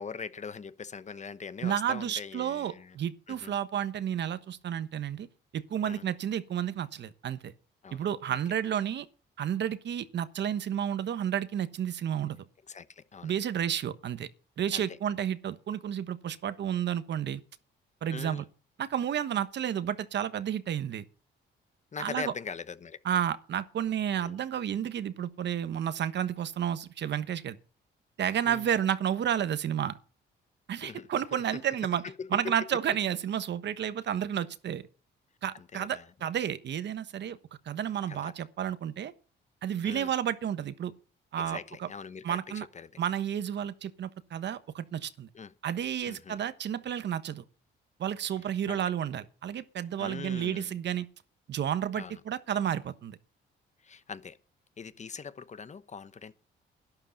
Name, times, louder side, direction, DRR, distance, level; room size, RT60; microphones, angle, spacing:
voice 1, 0.0-2.9 3.3-3.6 5.8-6.1 7.8-8.4 12.7-13.3 14.7-15.0 18.1-18.4 21.9-23.0 24.1-24.4 28.5-28.6 30.8-31.6 32.0-32.7 35.7-36.1 38.1-38.3 39.8-40.1 41.4-42.9 45.3-45.5 46.1-46.4 48.7-48.8 50.0-50.8 52.0-52.2 53.8-54.4 54.8-56.3, left 5 dB, 35° left, 1.0 m, -42 dB
voice 2, 1.6-5.3 5.5-7.5 7.9-9.1 9.4-12.4 13.2-14.3 14.6-17.4 18.0-18.4 18.8-21.0 22.0-22.3 23.0-27.6 28.2-30.0 30.7-32.0 32.3-34.9 35.4-37.4 37.7-39.1 39.6-40.9 41.3-41.9 42.2-42.6 43.0-45.3 45.6-47.4 48.0-51.1 51.5-53.2, right 9 dB, 60° right, 1.2 m, -31 dB
12.0 x 11.5 x 5.4 m
cardioid pair, 90°, 20 cm